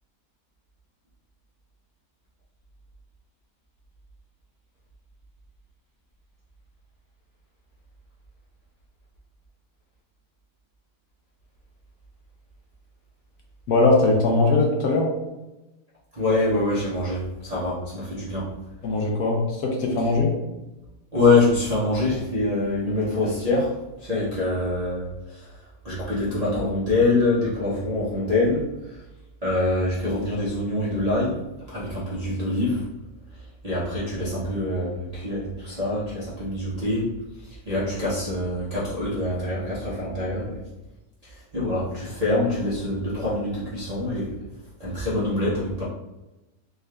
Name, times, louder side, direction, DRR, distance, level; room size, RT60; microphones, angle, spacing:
voice 1, 13.7-15.1 18.8-20.3, left 2 dB, 65° left, -1 dB, 1.1 m, -20 dB
voice 2, 16.2-18.5 21.1-23.7 24.0-25.1 25.8-28.6 29.4-31.4 31.7-32.8 33.6-37.0 37.7-40.6 41.5-44.3 44.8-45.8, left 2 dB, 35° right, -9 dB, 0.6 m, -24 dB
3.7 x 2.5 x 3.2 m, 1.0 s
omnidirectional pair, 1.9 m